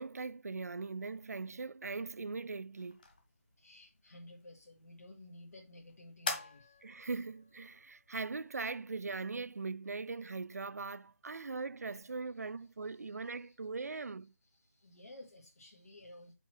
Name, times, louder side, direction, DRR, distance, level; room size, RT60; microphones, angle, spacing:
voice 1, 0.0-3.0 6.8-14.3, right 4 dB, 75° right, 0.4 m, -40 dB
sound 1, 2.8-9.7, left 3 dB, 35° left, 1.6 m, -47 dB
voice 2, 3.6-6.8 12.8-14.1 14.4-16.3, left 1 dB, 75° left, 2.0 m, -55 dB
5.8 x 4.5 x 5.9 m
figure-of-eight pair, 175°, 8 cm